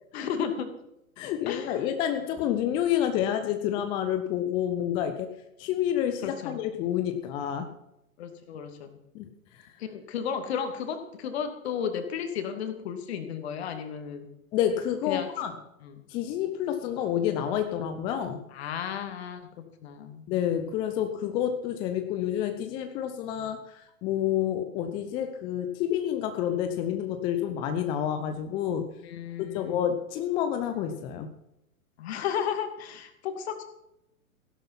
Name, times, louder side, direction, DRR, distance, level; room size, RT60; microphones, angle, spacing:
voice 1, 0.1-0.7 1.5-1.7 6.2-6.6 8.2-9.0 9.8-14.3 15.1-15.3 15.8-16.0 18.5-20.2 23.4-23.5 29.0-29.8 32.0-33.6, left 7 dB, 45° left, 7 dB, 2.5 m, -33 dB
voice 2, 1.2-5.3 5.6-7.7 9.1-9.3 14.5-15.5 16.1-18.4 20.3-28.9 29.5-31.3, left 10 dB, 10° left, 7 dB, 0.5 m, -29 dB
16.0 x 11.5 x 5.9 m, 0.85 s
figure-of-eight pair, 115°, 43 cm